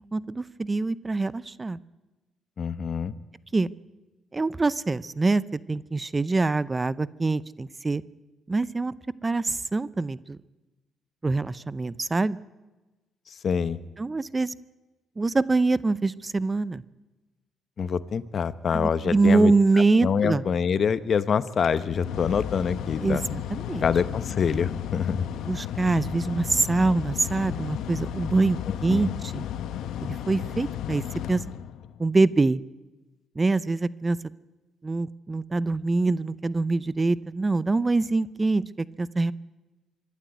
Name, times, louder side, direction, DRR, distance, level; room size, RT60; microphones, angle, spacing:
voice 1, 0.1-1.8 3.5-3.7 4.3-8.0 8.5-8.9 9.2-10.4 11.2-12.4 14.0-14.5 15.2-16.8 18.7-20.4 23.0-23.8 25.4-29.5 30.0-31.0 31.3-31.4 32.0-32.6 33.4-34.2 34.8-39.3, right 3 dB, 25° right, 19 dB, 0.6 m, -24 dB
voice 2, 2.6-3.1 13.4-13.8 17.8-19.5 20.0-23.2 23.8-25.3 28.9-29.1, left 6 dB, 50° left, 15 dB, 1.0 m, -25 dB
Mechanical fan, 21.5-32.1, left 10 dB, 80° left, 1.0 m, -34 dB
25.0 x 12.0 x 9.5 m, 1.1 s
cardioid pair, 90°, 0 cm